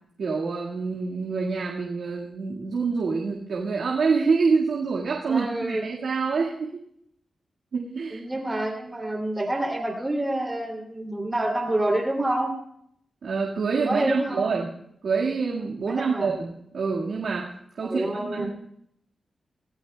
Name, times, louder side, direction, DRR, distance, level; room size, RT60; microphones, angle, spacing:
voice 1, 0.2-6.7 7.7-8.2 13.2-14.7 15.0-17.5 17.8-18.5, right 4 dB, 85° right, -3 dB, 1.7 m, -26 dB
voice 2, 5.3-5.8 8.1-12.5 13.8-14.5 15.8-16.3 17.8-18.5, right 1 dB, 15° right, 0 dB, 2.7 m, -27 dB
24.5 x 16.0 x 2.2 m, 0.72 s
wide cardioid pair, 150°, 0 cm